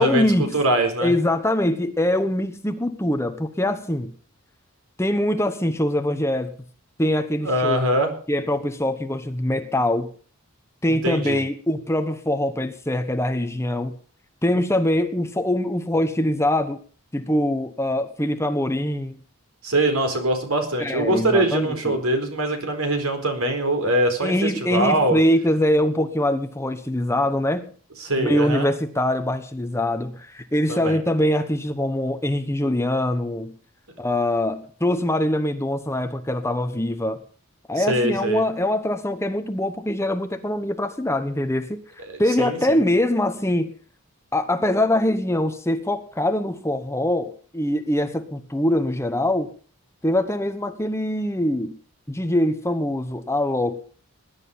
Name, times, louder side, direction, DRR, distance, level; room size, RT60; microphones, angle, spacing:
voice 1, 0.0-0.6 1.0-4.1 5.0-6.5 7.0-7.8 8.3-10.1 10.8-13.9 14.4-16.8 17.1-19.2 20.8-22.0 24.2-27.7 28.2-33.5 34.0-37.2 37.7-41.8 42.2-43.7 44.3-49.5 50.0-51.8 52.1-53.8, left 1 dB, 10° left, 1.1 m, -23 dB
voice 2, 0.5-1.1 7.4-8.1 10.9-11.4 19.6-25.2 28.0-28.7 30.7-31.0 37.8-38.4 42.1-42.8, right 1 dB, 75° right, 4.4 m, -23 dB
20.0 x 11.0 x 5.6 m
head